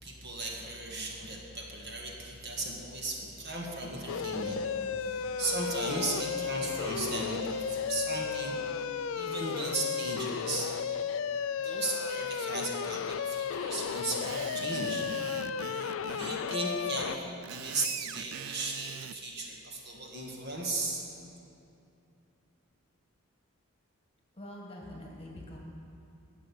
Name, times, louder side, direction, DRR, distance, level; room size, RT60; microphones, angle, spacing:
voice 1, 0.0-4.6 5.0-8.6 9.1-10.7 11.6-15.4 16.1-17.2 17.5-21.0, right 2 dB, 50° right, -1 dB, 1.6 m, -36 dB
sound 1, 4.1-17.2, left 6 dB, 65° left, 0.3 m, -34 dB
Screech, 13.9-16.3 17.2-19.2, right 10 dB, 75° right, 0.3 m, -42 dB
voice 2, 24.4-25.6, left 1 dB, 25° left, -1 dB, 1.5 m, -44 dB
11.0 x 6.5 x 8.6 m, 2.7 s
head